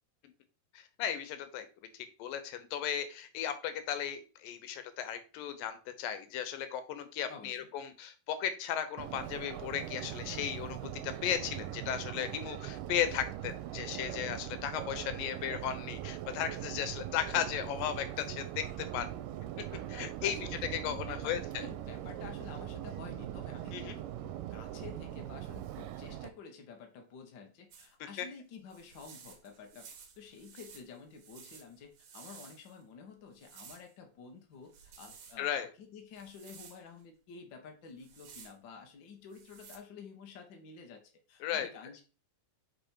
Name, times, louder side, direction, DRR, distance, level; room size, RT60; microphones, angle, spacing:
voice 1, 0.7-1.7 2.2-19.1 19.6-21.6 23.7-24.0 28.2-28.3 35.4-35.7 41.4-41.7, left 9 dB, 85° left, 10 dB, 2.6 m, -36 dB
voice 2, 7.3-7.7 20.2-20.5 20.8-29.9 30.2-41.0 41.3-42.0, left 5 dB, 55° left, 3 dB, 1.3 m, -51 dB
Subway metro underground, 9.0-26.3, right 12 dB, 85° right, 2.2 m, -41 dB
sound 1, 27.7-27.9 28.7-32.8 33.3-33.9 34.6-35.4 36.2-36.8 37.9-38.5 39.3-39.8, right 6 dB, 60° right, 2.1 m, -54 dB
5.4 x 5.1 x 4.4 m, 0.35 s
omnidirectional pair, 3.9 m